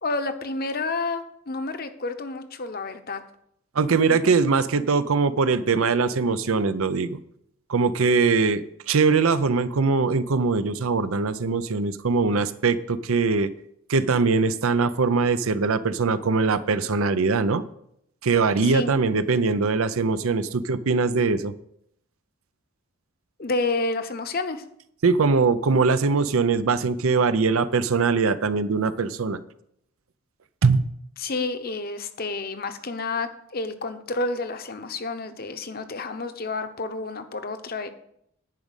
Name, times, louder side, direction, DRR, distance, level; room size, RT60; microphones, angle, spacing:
voice 1, 0.0-3.2 4.1-4.3 18.6-18.9 23.4-24.6 31.2-37.9, left 3 dB, 45° left, 8 dB, 0.9 m, -30 dB
voice 2, 3.7-7.2 7.7-13.5 13.9-17.6 18.2-21.5 25.0-29.4 30.6-30.9, right 4 dB, 75° right, 13 dB, 0.6 m, -22 dB
10.5 x 5.2 x 8.1 m, 0.74 s
head